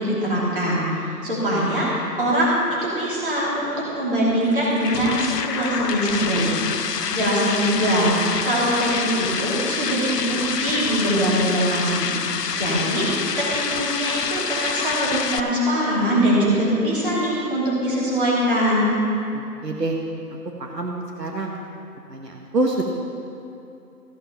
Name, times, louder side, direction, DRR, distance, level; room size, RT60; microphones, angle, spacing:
voice 1, 0.0-2.5 2.8-6.6 7.1-12.1 12.6-18.9, equal, 30° right, -7 dB, 2.9 m, -22 dB
sound 1, 4.4-15.4, left 6 dB, 70° left, 0.7 m, -27 dB
voice 2, 19.3-20.0 20.6-21.6 22.1-22.8, right 2 dB, 75° right, 1 dB, 1.3 m, -26 dB
14.5 x 6.6 x 5.7 m, 2.7 s
figure-of-eight pair, 165°, 50 cm